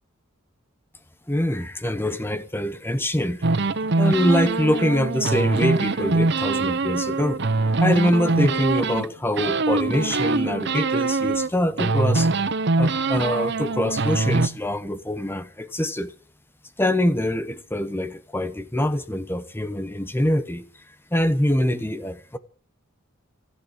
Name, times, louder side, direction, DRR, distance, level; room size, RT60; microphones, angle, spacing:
voice 1, 1.3-3.5 4.0-7.4 7.8-12.3 12.7-16.1 16.8-20.6 21.1-22.4, left 1 dB, 10° left, 1.0 m, -24 dB
sound 1, 3.4-9.1 9.4-11.5 11.8-14.5, right 3 dB, 55° right, 0.8 m, -23 dB
14.0 x 11.0 x 8.3 m
head